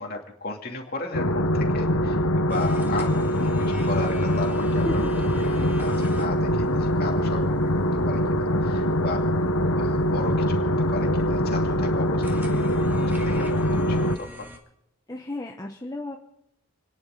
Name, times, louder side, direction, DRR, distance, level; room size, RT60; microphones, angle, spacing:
voice 1, 0.0-5.0 5.4-14.5, left 3 dB, 45° left, 1 dB, 2.6 m, -36 dB
sound 1, 1.1-14.2, equal, 75° left, 1.0 m, -23 dB
sound 2, 2.5-14.6, equal, 10° right, 1.7 m, -45 dB
voice 2, 4.9-5.7 15.1-16.2, left 1 dB, 15° left, 1 dB, 0.9 m, -34 dB
30.0 x 10.5 x 3.9 m, 0.79 s
head